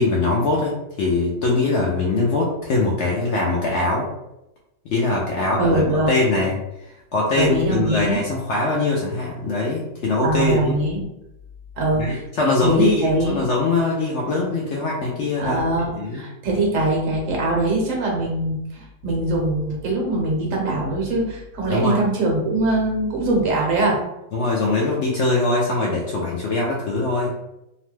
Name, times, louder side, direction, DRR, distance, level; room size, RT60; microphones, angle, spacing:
voice 1, 0.0-4.1 4.9-5.8 6.1-6.6 7.1-10.8 12.0-15.6 16.0-16.2 21.7-22.0 24.3-27.3, left 3 dB, 65° left, -3 dB, 0.7 m, -22 dB
voice 2, 5.6-6.1 7.4-8.2 10.2-11.0 11.8-12.2 12.6-13.4 15.4-24.0, right 2 dB, 65° right, -1 dB, 1.0 m, -22 dB
2.9 x 2.1 x 3.1 m, 0.89 s
omnidirectional pair, 1.6 m